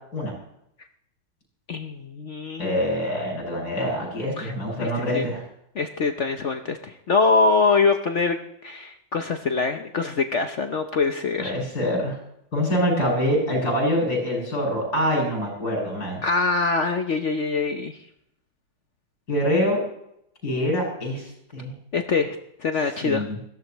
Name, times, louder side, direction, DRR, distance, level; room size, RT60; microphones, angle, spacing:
voice 1, 1.7-2.8 4.4-4.5 4.8-5.3 5.8-8.4 8.6-11.6 16.2-18.0 21.9-23.2, left 4 dB, 70° left, 6 dB, 0.6 m, -24 dB
voice 2, 2.6-5.4 11.4-12.2 12.5-16.2 19.3-19.8 20.4-21.7 23.0-23.4, equal, 45° left, -2 dB, 8.1 m, -25 dB
21.5 x 16.0 x 3.1 m, 0.75 s
omnidirectional pair, 2.3 m